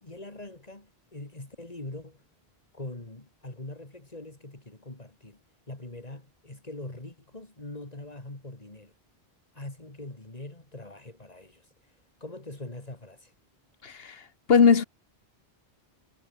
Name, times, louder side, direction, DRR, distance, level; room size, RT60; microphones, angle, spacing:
voice 1, 0.0-2.2 2.7-5.4 5.7-8.9 9.5-11.7 12.2-13.3, left 2 dB, 40° left, 3.4 m, -42 dB
voice 2, 13.8-14.2 14.5-14.9, left 6 dB, 70° left, 1.4 m, -19 dB
omnidirectional pair, 1.1 m